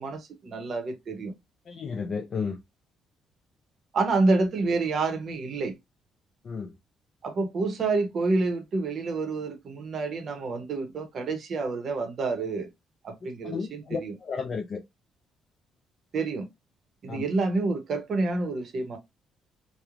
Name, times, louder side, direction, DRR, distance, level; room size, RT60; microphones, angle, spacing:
voice 1, 0.0-1.3 3.9-5.7 7.2-12.7 13.0-14.1 16.1-16.5 17.0-19.0, right 3 dB, 45° right, 0.7 m, -28 dB
voice 2, 1.7-2.6 6.4-6.7 13.4-14.8 17.1-17.2, left 5 dB, 40° left, 0.4 m, -33 dB
3.0 x 2.0 x 2.4 m
cardioid pair, 140°, 0 cm